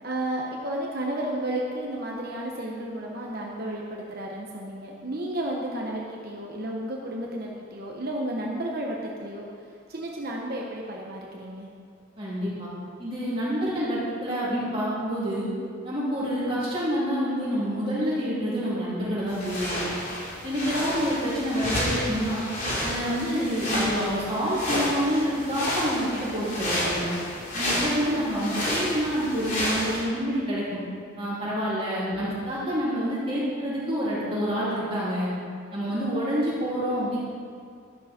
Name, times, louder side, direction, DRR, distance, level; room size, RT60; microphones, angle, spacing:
voice 1, 0.0-9.4 9.9-11.7 23.7-23.9 32.2-32.3, right 1 dB, 50° right, -2 dB, 1.2 m, -32 dB
voice 2, 12.2-12.7 13.0-15.5 15.8-19.8 20.4-22.5 22.8-27.1 27.5-30.8 31.2-35.3 35.7-37.2, equal, 25° right, -9 dB, 3.5 m, -27 dB
sound 1, 19.3-30.0, left 1 dB, 40° left, 3.2 m, -30 dB
13.0 x 12.0 x 4.5 m, 2.3 s
head